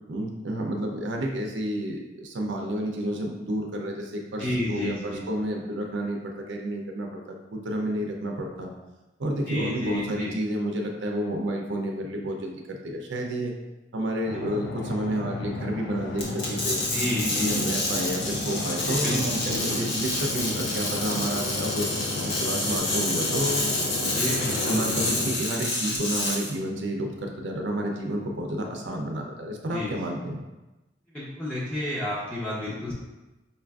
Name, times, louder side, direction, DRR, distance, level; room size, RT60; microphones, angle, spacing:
voice 1, 0.1-8.7 9.2-13.5 13.9-16.8 17.2-21.9 22.2-23.7 24.7-30.4, right 1 dB, 85° right, 1 dB, 0.5 m, -30 dB
voice 2, 4.4-5.2 9.5-10.3 16.9-17.7 18.9-19.8 24.2-25.2 29.7-30.0 31.1-32.9, left 1 dB, 5° left, -9 dB, 0.6 m, -31 dB
sound 1, 14.3-25.3, left 2 dB, 60° left, 0.3 m, -33 dB
sound 2, 16.2-26.5, left 2 dB, 75° left, 1.0 m, -28 dB
5.2 x 2.5 x 2.3 m, 1.1 s
head